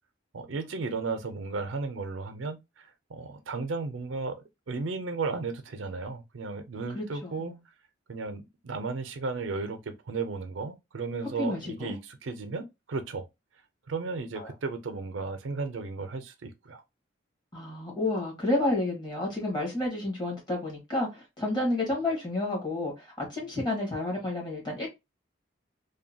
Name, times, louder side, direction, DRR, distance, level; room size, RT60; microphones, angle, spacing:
voice 1, 0.3-4.3 4.7-7.5 8.1-13.2 13.9-16.8, right 4 dB, 85° right, 0.5 m, -34 dB
voice 2, 6.9-7.6 11.4-11.9 14.3-14.5 17.5-24.9, left 2 dB, 25° left, 1.2 m, -30 dB
2.8 x 2.2 x 2.6 m
head